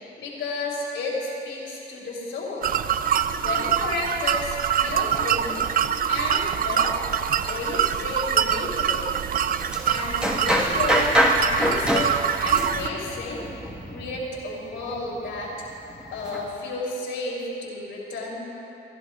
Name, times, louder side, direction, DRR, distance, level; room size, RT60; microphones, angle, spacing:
voice 1, 0.2-2.7 3.4-5.6 6.1-7.0 7.4-9.1 9.9-11.1 11.4-12.1 12.4-13.5 13.9-15.5 16.1-18.4, left 2 dB, 75° left, -4 dB, 3.4 m, -32 dB
sound 1, 2.6-12.9, right 9 dB, 45° right, 0.4 m, -25 dB
sound 2, 9.4-16.5, equal, 5° right, 1.7 m, -26 dB
26.5 x 11.5 x 2.5 m, 2.9 s
cardioid pair, 90°, 20 cm